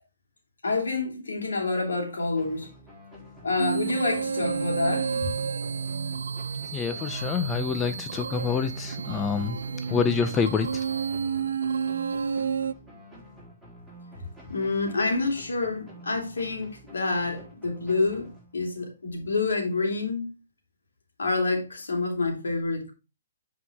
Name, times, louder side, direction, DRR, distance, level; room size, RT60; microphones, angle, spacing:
voice 1, 0.6-2.7 3.4-5.1 14.5-18.3 18.5-20.3 21.2-22.9, left 3 dB, 90° left, 2.8 m, -27 dB
sound 1, 2.4-18.9, equal, ahead, 3.9 m, -49 dB
sound 2, 3.6-12.7, right 6 dB, 80° right, 0.3 m, -30 dB
voice 2, 6.7-10.8, left 6 dB, 15° left, 0.5 m, -27 dB
8.4 x 4.9 x 3.5 m
hypercardioid pair, 150°, 0 cm